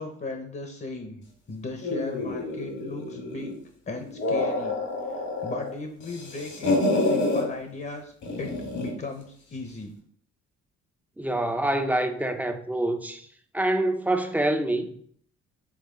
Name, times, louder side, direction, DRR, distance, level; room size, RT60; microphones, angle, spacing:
voice 1, 0.0-3.5 3.9-4.8 5.0-9.9, left 3 dB, 30° left, 1.0 m, -37 dB
sound 1, 1.8-3.6 4.0-5.7 6.0-7.4 8.2-9.0, left 2 dB, 75° left, 2.1 m, -28 dB
voice 2, 11.2-13.3 13.5-14.9, right 1 dB, 5° right, 0.7 m, -26 dB
7.4 x 3.7 x 3.8 m
cardioid pair, 90°, 30 cm